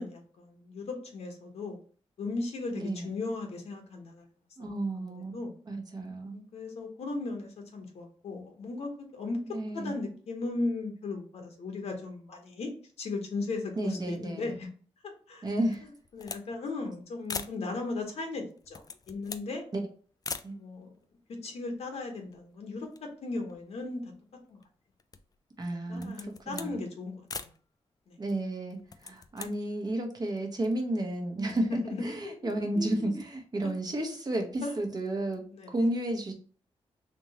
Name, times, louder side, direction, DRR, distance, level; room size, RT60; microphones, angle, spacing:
voice 1, 0.0-1.8 2.2-4.2 5.0-5.5 6.3-12.7 13.0-14.7 15.0-15.4 15.8-19.6 20.5-20.9 21.4-24.1 24.5-24.6 25.7-27.5 28.1-28.2 31.4-33.1 33.6-33.7 34.1-34.2 34.6-34.8 35.5-35.7, left 3 dB, 75° left, 3 dB, 1.2 m, -37 dB
voice 2, 2.7-3.1 4.6-5.4 5.7-6.4 9.5-9.9 13.8-14.5 15.4-15.8 19.7-19.8 20.4-20.6 25.6-26.8 28.2-31.7 32.0-36.3, right 1 dB, 40° right, 3 dB, 1.0 m, -32 dB
sound 1, 15.7-16.5 16.8-16.9 17.2-17.6 18.5-19.5 20.2-20.5 21.3-21.4 21.6-22.5 22.8-24.1 24.6-25.4 25.9-26.7 27.3-27.6 28.7-29.5, left 5 dB, 35° left, 0.4 m, -41 dB
3.5 x 3.0 x 2.9 m, 0.42 s
cardioid pair, 95°, 11 cm